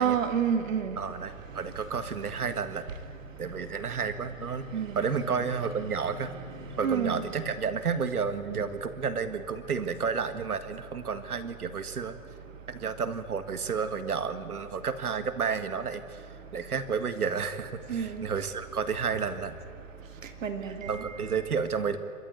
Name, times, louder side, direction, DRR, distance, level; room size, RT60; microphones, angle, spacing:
voice 1, 0.0-1.0 4.7-5.0 6.8-7.2 17.9-18.2 20.4-21.0, right 7 dB, 60° right, 8 dB, 2.3 m, -28 dB
voice 2, 1.0-2.8 3.4-4.7 5.0-6.3 6.8-12.2 12.7-19.6 20.9-22.0, right 6 dB, 80° right, 10 dB, 1.8 m, -31 dB
26.0 x 14.0 x 9.5 m, 2.4 s
hypercardioid pair, 145°, 44 cm